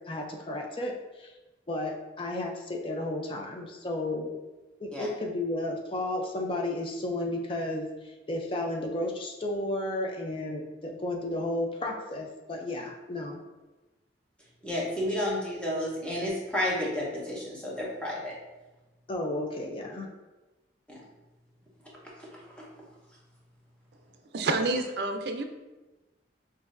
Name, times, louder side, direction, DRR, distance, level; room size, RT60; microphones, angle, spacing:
voice 1, 0.1-1.3 1.7-4.3 4.8-13.4 19.1-20.1, left 1 dB, 30° left, 1 dB, 0.4 m, -33 dB
voice 2, 14.6-18.3 20.9-21.0 22.2-22.7, left 1 dB, 5° left, -5 dB, 0.9 m, -31 dB
voice 3, 24.3-25.4, right 2 dB, 60° right, 6 dB, 0.4 m, -28 dB
5.9 x 2.5 x 2.5 m, 1.1 s
head